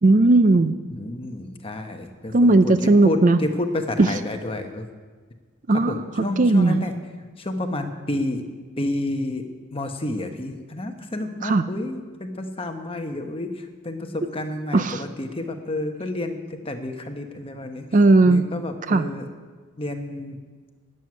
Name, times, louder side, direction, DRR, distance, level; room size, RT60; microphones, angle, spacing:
voice 1, 0.0-0.7 2.3-3.4 4.0-4.1 5.7-6.9 11.4-11.6 14.7-15.0 17.9-18.4 18.9-19.0, right 2 dB, 35° right, 11 dB, 0.5 m, -17 dB
voice 2, 0.9-4.9 5.7-6.9 7.2-8.4 8.8-17.9 18.2-19.3 19.8-20.4, left 1 dB, 25° left, 5 dB, 1.1 m, -30 dB
12.5 x 7.8 x 9.6 m, 1.5 s
head